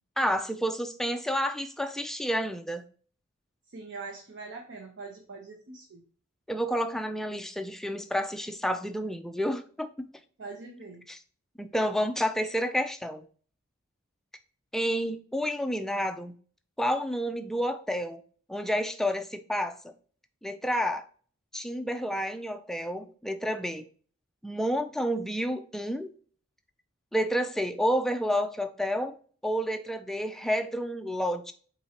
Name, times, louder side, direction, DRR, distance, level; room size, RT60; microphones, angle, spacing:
voice 1, 0.2-2.8 6.5-10.1 11.1-11.2 11.6-13.2 14.7-16.3 16.8-18.2 18.5-19.8 20.4-21.0 21.5-23.8 24.4-26.1 27.1-29.1 29.4-31.5, equal, ahead, 7 dB, 0.3 m, -30 dB
voice 2, 3.7-6.0 10.4-11.0, right 4 dB, 55° right, 1 dB, 0.7 m, -43 dB
4.3 x 3.7 x 2.9 m, 0.43 s
head